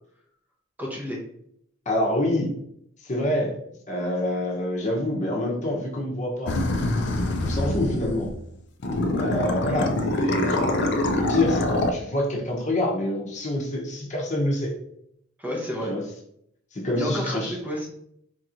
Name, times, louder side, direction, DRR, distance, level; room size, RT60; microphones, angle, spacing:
voice 1, 0.8-1.2 9.6-9.8 15.4-15.9 16.9-17.9, equal, 10° right, -2 dB, 0.7 m, -30 dB
voice 2, 1.9-2.5 3.0-3.6 3.9-6.5 7.4-8.3 9.1-10.6 11.0-14.7 15.8-16.0 16.7-17.5, left 1 dB, 35° left, -1 dB, 0.8 m, -26 dB
sound 1, 6.5-8.4 8.8-11.9, left 2 dB, 55° left, 0.4 m, -25 dB
4.5 x 2.9 x 2.5 m, 0.72 s
head